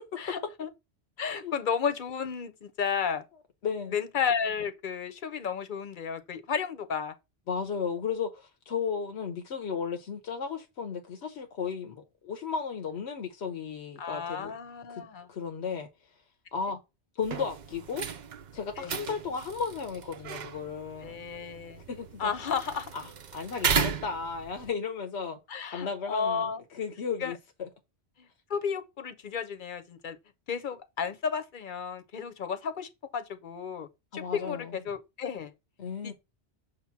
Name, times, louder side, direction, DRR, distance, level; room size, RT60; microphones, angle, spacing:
voice 1, 0.2-0.7 1.2-3.2 3.9-7.1 14.0-15.3 18.8-19.0 21.0-21.8 22.2-22.9 25.5-26.6 27.2-27.3 28.2-30.2 30.5-33.9 34.1-35.5 36.0-36.1, left 6 dB, 50° left, 0.9 m, -33 dB
voice 2, 1.2-1.6 3.6-4.0 7.5-14.5 14.9-15.0 15.3-15.9 16.5-16.8 17.2-18.1 18.5-21.2 21.9-22.3 22.9-23.0 23.3-25.4 25.7-27.7 34.1-34.8 35.8-36.1, left 6 dB, 85° left, 1.1 m, -34 dB
sound 1, 17.2-24.7, right 7 dB, 50° right, 0.7 m, -35 dB
6.5 x 3.0 x 5.7 m
omnidirectional pair, 1.1 m